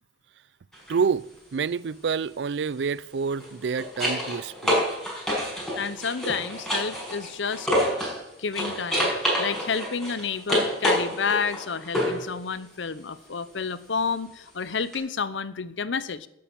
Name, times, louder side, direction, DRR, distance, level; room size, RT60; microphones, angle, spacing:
sound 1, 0.7-1.0 3.3-8.2 8.5-12.3 14.9-15.0, equal, 5° left, 5.7 m, -28 dB
voice 1, 0.9-1.3 1.5-4.8, right 5 dB, 70° right, 0.4 m, -28 dB
voice 2, 5.8-7.7 8.4-16.3, left 5 dB, 90° left, 0.8 m, -30 dB
11.5 x 8.7 x 8.8 m
head